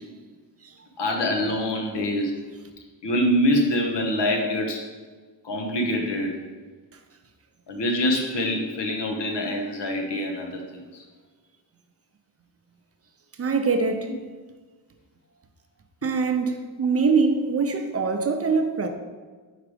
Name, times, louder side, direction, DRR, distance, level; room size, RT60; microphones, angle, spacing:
voice 1, 1.0-2.3 3.0-4.9 5.4-6.4 7.7-11.0 16.9-17.0, left 1 dB, 80° left, 1.1 m, -25 dB
voice 2, 13.4-14.1 16.0-18.9, right 4 dB, 35° right, 0.5 m, -23 dB
4.9 x 4.7 x 5.0 m
wide cardioid pair, 155°, 42 cm